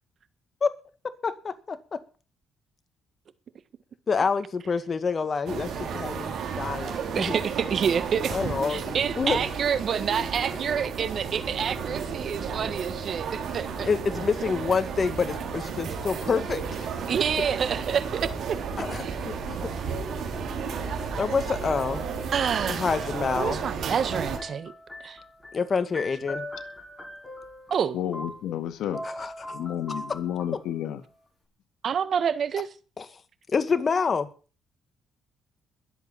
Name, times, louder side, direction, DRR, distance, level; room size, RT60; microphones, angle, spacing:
voice 1, 1.2-1.8 4.1-7.3 8.3-9.4 13.8-16.9 18.8-19.7 21.2-22.1 22.7-23.6 25.5-26.5 29.0-29.3 33.0-33.1 33.5-34.3, left 5 dB, 40° left, 2.0 m, -27 dB
sound 1, 5.5-24.4, right 6 dB, 75° right, 5.1 m, -33 dB
voice 2, 7.1-8.3 8.7-13.9 17.1-18.9 22.3-22.9 23.4-24.7 25.0-25.2 27.7-28.0 31.8-32.7, right 7 dB, 55° right, 1.4 m, -28 dB
sound 2, 21.5-22.5 24.1-28.7 28.9-31.1, left 1 dB, 10° left, 6.4 m, -41 dB
voice 3, 27.9-29.0 29.5-31.0, left 10 dB, 80° left, 1.9 m, -31 dB
21.5 x 8.0 x 5.8 m
cardioid pair, 90°, 0 cm